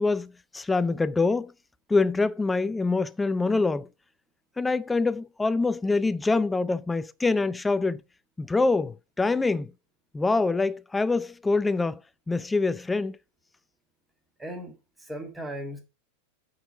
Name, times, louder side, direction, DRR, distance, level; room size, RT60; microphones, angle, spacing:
voice 1, 0.0-1.5 1.9-3.9 4.6-8.0 8.4-9.7 10.1-12.0 12.3-13.2, left 3 dB, 10° left, 0.4 m, -25 dB
voice 2, 14.4-15.8, equal, 10° right, 1.7 m, -37 dB
9.0 x 4.1 x 4.9 m
figure-of-eight pair, 90°, 0 cm